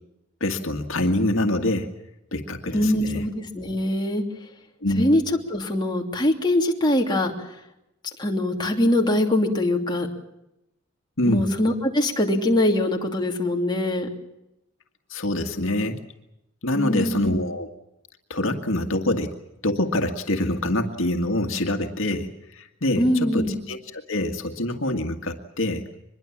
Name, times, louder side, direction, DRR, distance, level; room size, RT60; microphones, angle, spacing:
voice 1, 0.4-1.9 2.3-3.3 4.8-5.1 11.2-11.5 15.1-16.0 16.6-17.7 18.3-19.4 19.6-25.9, left 1 dB, 70° left, 5 dB, 2.0 m, -25 dB
voice 2, 2.7-4.2 5.0-5.2 5.5-7.3 8.2-10.1 11.3-14.1 16.7-17.3 23.0-23.6, left 1 dB, 20° left, 1 dB, 3.0 m, -22 dB
24.5 x 22.0 x 7.3 m, 0.87 s
head